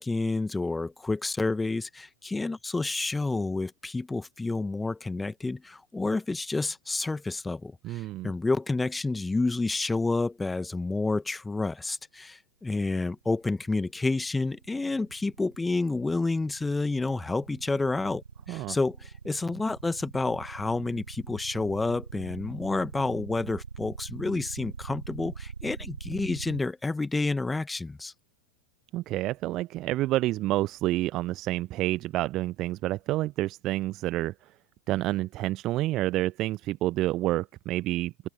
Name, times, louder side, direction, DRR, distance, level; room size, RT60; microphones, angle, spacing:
voice 1, 0.0-18.2 18.5-28.1, left 3 dB, 10° left, 1.8 m, -29 dB
voice 2, 7.8-8.3 18.5-18.8 28.9-34.3 34.9-38.3, right 16 dB, 35° right, 0.9 m, -29 dB
sound 1, 13.4-26.6, right 6 dB, 75° right, 7.1 m, -43 dB
open air
figure-of-eight pair, 90°, 0 cm